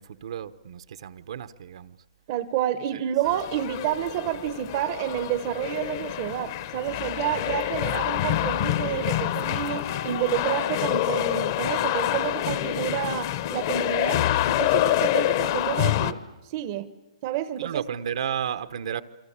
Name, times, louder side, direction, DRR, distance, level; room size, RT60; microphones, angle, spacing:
voice 1, 0.0-1.9 17.6-19.0, right 8 dB, 60° right, 13 dB, 1.0 m, -32 dB
voice 2, 2.3-14.2 14.6-16.2 16.5-16.9 17.2-17.8, right 12 dB, 35° right, 13 dB, 0.8 m, -29 dB
sound 1, 3.2-16.1, left 13 dB, 35° left, 0.9 m, -27 dB
27.5 x 23.5 x 8.7 m, 1.1 s
hypercardioid pair, 165°, 3 cm